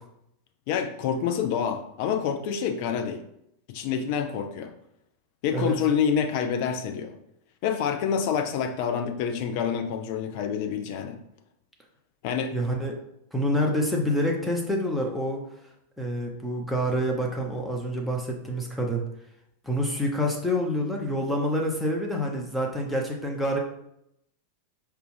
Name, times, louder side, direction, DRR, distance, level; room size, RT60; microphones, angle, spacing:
voice 1, 0.7-3.2 3.7-4.7 5.4-7.2 7.6-11.2 12.2-12.5, left 7 dB, 45° left, 6 dB, 0.5 m, -27 dB
voice 2, 12.5-13.0 13.3-15.4 16.0-19.0 19.6-23.6, equal, ahead, -1 dB, 0.8 m, -27 dB
4.7 x 2.5 x 3.2 m, 0.77 s
figure-of-eight pair, 90°, 0 cm